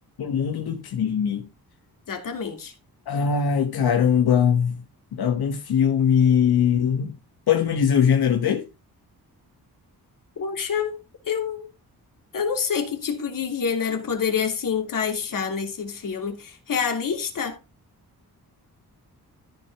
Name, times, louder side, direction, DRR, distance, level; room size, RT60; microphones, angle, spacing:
voice 1, 0.2-1.5 3.1-4.8 5.1-7.1 7.5-8.7, left 7 dB, 90° left, 1.5 m, -21 dB
voice 2, 2.1-2.7 10.4-11.0 11.2-11.7 12.3-17.6, left 6 dB, 60° left, 2.8 m, -27 dB
13.5 x 5.0 x 4.7 m
wide cardioid pair, 155°, 37 cm